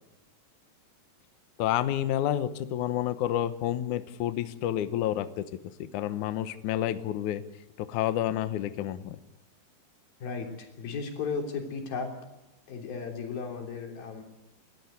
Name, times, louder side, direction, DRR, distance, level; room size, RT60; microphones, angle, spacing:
voice 1, 1.6-5.5 5.8-7.4 7.8-9.2, left 12 dB, 90° left, 12 dB, 1.7 m, -29 dB
voice 2, 10.2-12.1 12.7-14.2, left 5 dB, 60° left, 3 dB, 5.0 m, -35 dB
30.0 x 13.5 x 8.3 m, 0.96 s
omnidirectional pair, 5.0 m